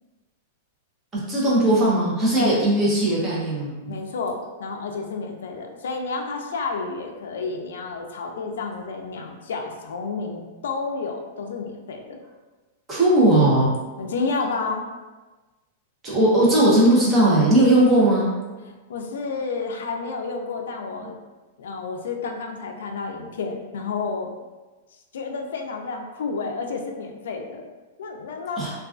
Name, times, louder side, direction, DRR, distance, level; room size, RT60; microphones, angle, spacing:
voice 1, 1.3-4.0 12.9-13.7 16.0-18.3 28.6-28.7, right 1 dB, 15° right, -6 dB, 0.6 m, -18 dB
voice 2, 3.9-12.2 14.0-14.8 18.6-21.2 21.6-24.3 25.1-27.7 28.0-28.7, left 4 dB, 85° left, 3 dB, 0.3 m, -30 dB
2.3 x 2.2 x 2.4 m, 1.2 s
supercardioid pair, 170°, 0 cm